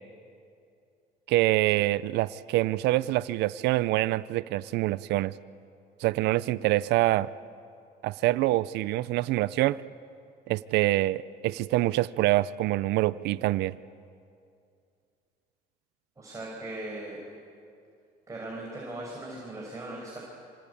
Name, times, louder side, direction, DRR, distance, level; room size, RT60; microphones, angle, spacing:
voice 1, 1.3-5.3 6.0-7.3 8.0-9.8 10.5-13.8, right 17 dB, 85° right, 17 dB, 0.6 m, -25 dB
voice 2, 16.2-17.2 18.3-20.2, right 2 dB, 20° right, -3 dB, 6.3 m, -39 dB
26.0 x 26.0 x 8.7 m, 2.4 s
cardioid pair, 110°, 17 cm